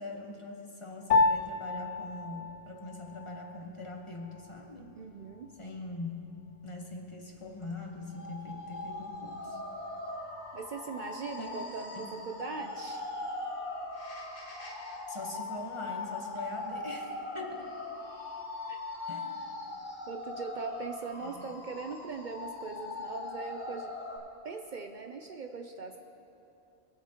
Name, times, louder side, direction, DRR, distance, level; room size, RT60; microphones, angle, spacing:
voice 1, 0.0-4.9 5.6-6.1 6.6-9.6 11.4-11.6 12.0-12.1 15.1-17.7 19.1-19.4 21.2-21.3, left 2 dB, 30° left, 1 dB, 1.1 m, -42 dB
Piano, 1.1-10.7, left 3 dB, 70° left, 0.8 m, -34 dB
voice 2, 5.0-5.5 10.5-13.1 18.7-18.8 20.1-23.9 24.4-26.0, right 4 dB, 55° right, 4 dB, 0.7 m, -40 dB
sound 1, 8.1-24.2, left 2 dB, 45° left, 1.5 m, -40 dB
22.0 x 8.1 x 3.0 m, 2.8 s
omnidirectional pair, 1.1 m